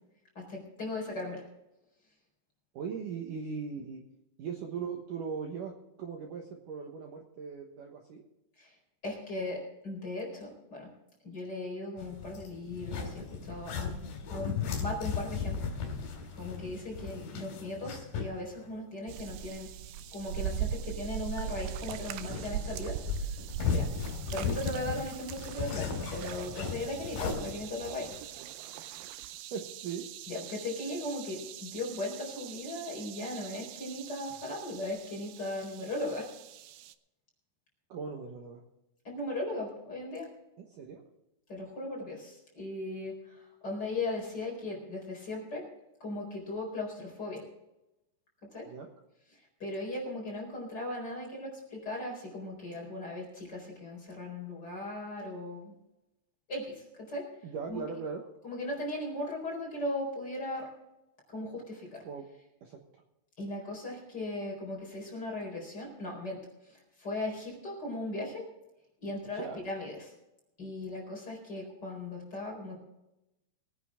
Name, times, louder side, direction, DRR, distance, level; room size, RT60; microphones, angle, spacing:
voice 1, 0.3-1.4 8.6-8.7 9.0-10.9 11.2-14.0 14.3-16.0 16.4-19.7 20.1-23.0 23.7-23.9 24.3-28.1 30.3-36.3 39.0-40.3 41.5-45.7 46.0-47.4 48.5-48.7 49.6-55.7 56.5-57.3 57.7-57.8 58.4-60.7 61.3-62.0 63.4-68.4 69.0-70.1 70.6-72.8, left 2 dB, 25° left, -2 dB, 4.5 m, -38 dB
voice 2, 2.7-4.0 4.4-8.2 16.9-17.0 23.8-24.0 29.5-30.1 37.9-38.6 40.6-41.0 48.7-48.9 57.4-58.2 62.0-62.3 62.6-63.0 69.3-69.6, right 6 dB, 65° right, 2 dB, 2.4 m, -39 dB
sound 1, 12.0-18.4 18.6-18.7 21.7-28.2, left 5 dB, 60° left, 4.3 m, -36 dB
sound 2, 19.1-36.9, right 10 dB, 85° right, 2.0 m, -41 dB
21.5 x 9.6 x 3.7 m, 0.92 s
omnidirectional pair, 4.9 m